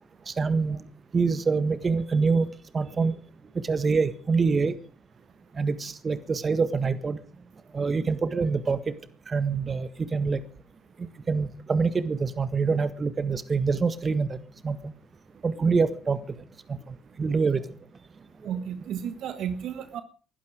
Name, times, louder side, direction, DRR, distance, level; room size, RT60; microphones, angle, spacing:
voice 1, 0.3-0.8 1.1-3.2 3.5-4.7 5.5-7.2 7.7-8.9 9.3-10.4 11.0-14.4 14.6-14.9 15.4-16.2 16.7-17.6 18.4-18.5, right 4 dB, 35° right, 14 dB, 1.6 m, -26 dB
voice 2, 18.4-20.0, right 8 dB, 60° right, 12 dB, 1.5 m, -33 dB
20.5 x 12.0 x 5.0 m, 0.37 s
hypercardioid pair, 55°, 0 cm